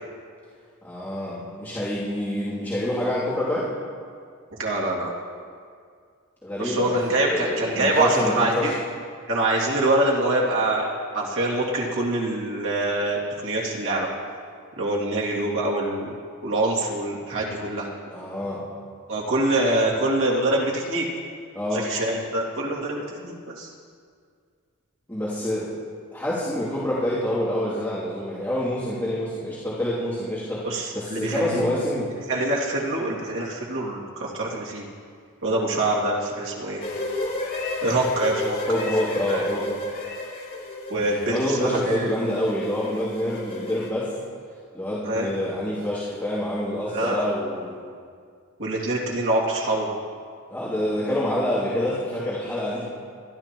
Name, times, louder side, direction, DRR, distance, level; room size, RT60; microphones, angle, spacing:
voice 1, 0.8-3.7 6.4-8.7 18.1-18.6 21.5-21.9 25.1-25.7 26.1-32.1 38.7-39.7 41.1-44.2 44.7-47.7 50.5-52.9, left 1 dB, 10° left, -11 dB, 2.7 m, -27 dB
voice 2, 4.6-5.1 6.6-8.7 9.3-10.9 11.1-14.1 14.8-16.1 16.4-17.9 19.1-21.1 21.7-23.7 30.6-31.6 32.3-34.8 35.4-36.8 37.8-38.6 39.3-39.4 40.9-42.0 45.0-45.3 46.9-47.3 48.6-49.9, right 2 dB, 65° right, -3 dB, 2.5 m, -25 dB
sound 1, 36.8-43.9, left 2 dB, 40° left, 2.7 m, -32 dB
23.5 x 12.5 x 3.0 m, 2.1 s
head